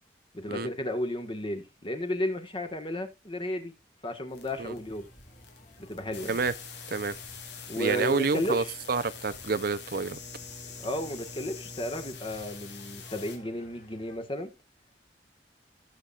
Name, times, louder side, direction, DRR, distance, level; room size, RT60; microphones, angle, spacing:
voice 1, 0.3-3.7 4.0-5.1 5.8-6.4 7.7-8.7 10.8-14.5, left 1 dB, 30° left, 1.5 m, -33 dB
sound 1, 4.3-13.4, left 5 dB, 80° left, 2.6 m, -45 dB
sound 2, 4.4-14.2, left 1 dB, 45° left, 3.2 m, -56 dB
voice 2, 7.8-10.2, right 4 dB, 55° right, 0.6 m, -28 dB
16.5 x 7.3 x 2.4 m
head